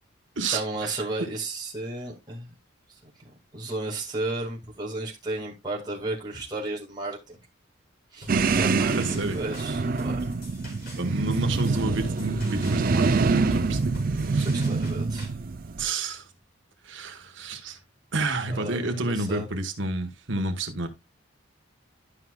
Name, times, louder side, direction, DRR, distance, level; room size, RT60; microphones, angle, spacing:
voice 1, 0.4-2.5 3.5-7.4 8.1-10.2 14.4-15.3 18.5-19.5, right 2 dB, 20° right, 2.2 m, -33 dB
sound 1, 8.2-15.3, left 1 dB, 45° left, 4.4 m, -44 dB
sound 2, 8.3-15.8, right 4 dB, 45° right, 0.4 m, -25 dB
voice 2, 9.0-9.4 11.0-13.9 14.3-14.5 15.8-16.3 16.8-17.8 18.1-20.9, right 2 dB, 65° right, 1.4 m, -30 dB
12.5 x 5.9 x 2.4 m
head